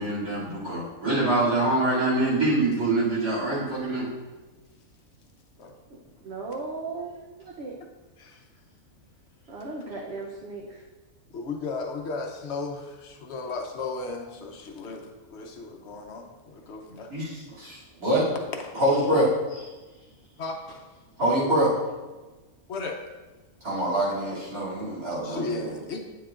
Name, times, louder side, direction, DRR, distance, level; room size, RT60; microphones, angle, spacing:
voice 1, 0.0-4.0 17.1-17.2 18.0-18.2 18.8-19.3 21.2-21.7 23.6-25.6, right 1 dB, 70° right, -8 dB, 3.2 m, -24 dB
voice 2, 6.2-7.7 9.5-10.8, right 3 dB, 55° right, -2 dB, 0.9 m, -36 dB
voice 3, 11.3-17.1 18.5-18.8 19.0-19.2 20.4-20.9 22.7-23.0 25.2-26.0, left 3 dB, 55° left, 3 dB, 1.0 m, -35 dB
8.9 x 7.0 x 2.5 m, 1.2 s
omnidirectional pair, 1.5 m